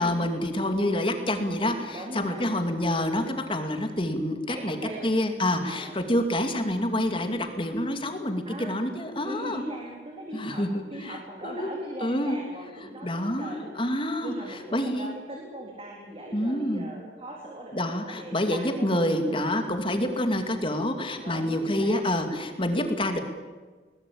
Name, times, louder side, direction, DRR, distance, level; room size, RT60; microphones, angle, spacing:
voice 1, 0.0-4.8 5.0-9.6 10.3-11.2 11.4-11.7 12.0-12.4 13.0-15.1 16.3-16.9 17.7-23.2, left 1 dB, 30° left, 6 dB, 2.6 m, -27 dB
voice 2, 1.9-2.4 4.5-5.1 5.6-6.0 8.4-8.8 9.2-10.6 10.9-13.8 14.2-19.1 19.3-19.6 21.2-22.0, right 1 dB, 30° right, -1 dB, 3.9 m, -40 dB
22.0 x 20.0 x 8.8 m, 1.4 s
head